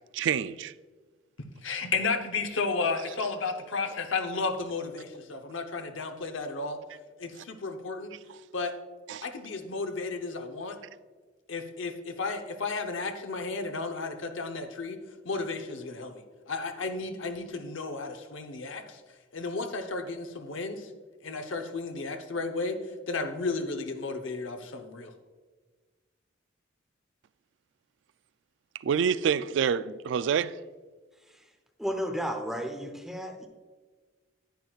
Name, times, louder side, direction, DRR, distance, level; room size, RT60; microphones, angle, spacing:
voice 1, 0.1-0.7 8.3-8.4 9.1-9.3 28.8-30.6, right 7 dB, 75° right, 0.3 m, -27 dB
voice 2, 1.6-6.8 7.2-8.1 8.5-8.7 9.2-10.8 11.5-15.0 15.2-19.0 19.3-20.9 21.2-22.8 23.1-25.1, left 4 dB, 90° left, 0.8 m, -33 dB
voice 3, 31.8-33.5, equal, ahead, 0.7 m, -33 dB
10.5 x 9.1 x 2.4 m
head